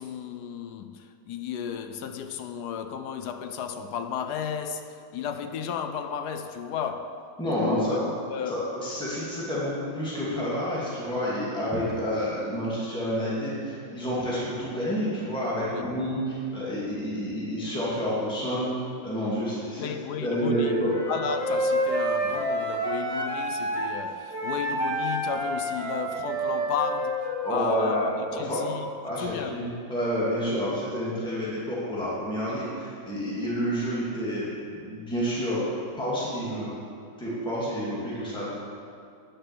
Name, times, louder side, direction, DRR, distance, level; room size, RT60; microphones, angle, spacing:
voice 1, 0.0-7.2 7.7-8.0 8.3-8.7 15.7-15.9 19.8-20.8 21.1-28.9 29.2-29.6, left 7 dB, 70° left, 1.0 m, -33 dB
voice 2, 7.4-8.0 8.5-18.7 19.0-19.9 20.2-21.0 27.4-28.7 29.0-35.6 36.0-36.7 37.2-38.5, equal, 5° left, 2.4 m, -29 dB
Wind instrument woodwind instrument, 20.4-24.0 24.3-28.1, right 1 dB, 35° right, 1.8 m, -29 dB
10.0 x 6.7 x 7.7 m
omnidirectional pair, 2.0 m